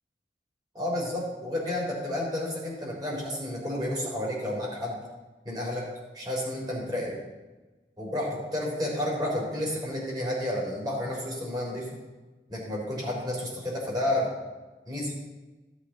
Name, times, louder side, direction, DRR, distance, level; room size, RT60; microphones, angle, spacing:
voice 1, 0.7-5.0 5.4-5.9 6.1-7.2 8.0-11.9 12.5-14.3 14.9-15.1, left 1 dB, 25° right, -3 dB, 3.7 m, -31 dB
15.5 x 8.1 x 3.9 m, 1.2 s
head